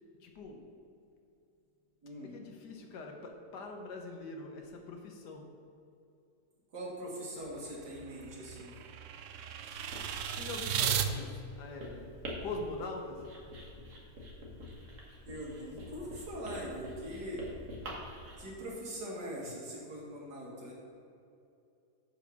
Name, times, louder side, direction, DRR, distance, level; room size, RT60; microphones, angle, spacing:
voice 1, 0.2-0.6 2.2-5.4 10.3-12.1 12.4-13.2, left 3 dB, 80° left, 3 dB, 1.6 m, -43 dB
voice 2, 2.0-2.3 6.7-8.7 15.3-17.4 18.4-20.7, equal, 85° right, -4 dB, 2.6 m, -42 dB
sound 1, 7.5-11.1, right 9 dB, 70° right, 0.7 m, -35 dB
Writing, 9.7-18.4, equal, 50° right, 1.9 m, -47 dB
7.3 x 6.3 x 6.2 m, 2.6 s
omnidirectional pair, 1.8 m